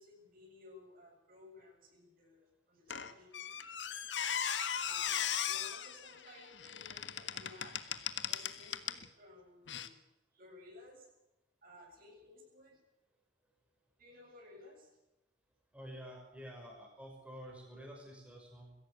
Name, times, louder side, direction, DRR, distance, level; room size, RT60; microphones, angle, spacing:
voice 1, 0.0-3.4 4.8-7.8 8.3-10.0 10.3-11.1 11.6-12.8 14.0-14.9, left 1 dB, 50° right, 1 dB, 7.4 m, -56 dB
Squeak, 2.9-9.1 9.7-9.9, left 9 dB, 75° left, 1.5 m, -38 dB
voice 2, 15.7-18.8, equal, 5° right, -1 dB, 5.9 m, -49 dB
22.0 x 16.5 x 8.4 m, 0.94 s
head